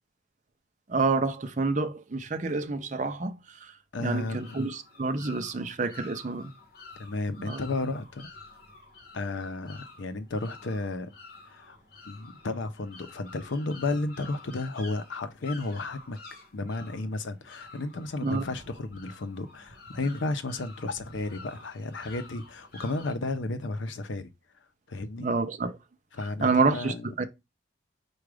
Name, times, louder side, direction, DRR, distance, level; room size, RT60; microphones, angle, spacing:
voice 1, 0.9-3.7 4.0-6.5 7.4-7.6 18.2-18.4 25.2-25.8 26.4-27.3, right 3 dB, 40° right, 0.5 m, -28 dB
voice 2, 3.9-4.6 7.0-8.3 9.1-11.1 11.5-11.8 12.1-16.2 16.5-24.3 24.9-25.3 26.1-27.0, left 2 dB, 80° left, 0.6 m, -33 dB
sound 1, 4.1-23.1, left 3 dB, 50° left, 1.2 m, -49 dB
4.8 x 2.3 x 4.8 m
head